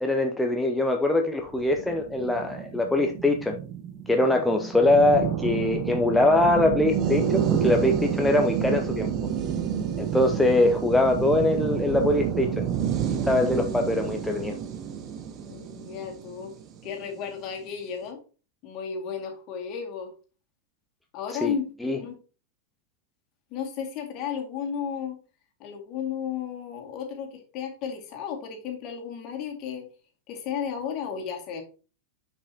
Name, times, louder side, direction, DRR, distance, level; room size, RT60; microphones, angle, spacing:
voice 1, 0.0-3.6 4.1-9.1 10.0-12.7 13.2-14.6 21.4-21.5 21.8-22.0, left 2 dB, 5° left, 0.7 m, -23 dB
sound 1, 1.5-17.0, right 8 dB, 35° right, 1.0 m, -29 dB
voice 2, 15.4-16.5 16.8-18.2 18.6-20.1 21.1-21.6 22.0-22.2 23.5-25.2 25.6-29.9 30.3-31.6, left 7 dB, 40° left, 2.2 m, -33 dB
9.7 x 5.4 x 2.9 m
figure-of-eight pair, 90°, 0 cm